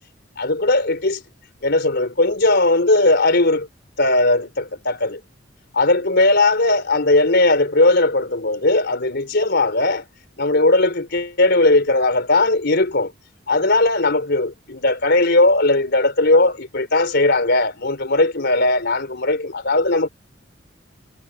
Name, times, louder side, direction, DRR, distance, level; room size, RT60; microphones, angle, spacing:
voice 1, 0.4-1.2 1.6-3.7 4.0-5.2 5.7-10.0 10.4-13.1 13.5-20.1, left 2 dB, 60° left, 4.1 m, -18 dB
head